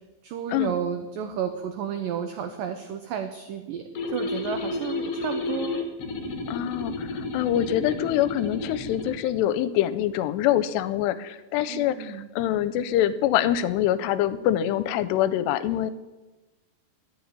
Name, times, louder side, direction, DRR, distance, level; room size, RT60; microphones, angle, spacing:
voice 1, 0.2-5.8 11.6-12.3, right 8 dB, 90° right, 7 dB, 1.9 m, -32 dB
sound 1, 4.0-9.2, left 3 dB, 60° left, 1.6 m, -32 dB
voice 2, 6.5-15.9, left 11 dB, 85° left, 14 dB, 2.7 m, -25 dB
10.5 x 8.1 x 9.7 m, 1.1 s
omnidirectional pair, 5.0 m